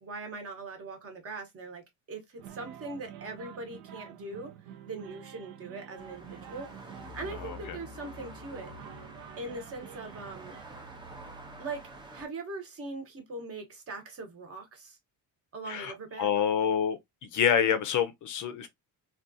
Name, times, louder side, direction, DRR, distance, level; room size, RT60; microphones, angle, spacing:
voice 1, 0.0-1.8 2.1-4.5 4.8-6.7 7.1-8.7 9.4-10.6 11.6-11.8 12.1-15.0 15.5-16.3, right 3 dB, 35° right, 0.9 m, -41 dB
sound 1, 2.4-10.6, right 10 dB, 90° right, 0.7 m, -48 dB
sound 2, 6.0-12.3, equal, 15° right, 0.4 m, -47 dB
voice 2, 7.4-7.8 15.7-17.0 17.3-18.7, left 8 dB, 50° left, 0.5 m, -27 dB
3.6 x 2.3 x 2.5 m
cardioid pair, 175°, 40 cm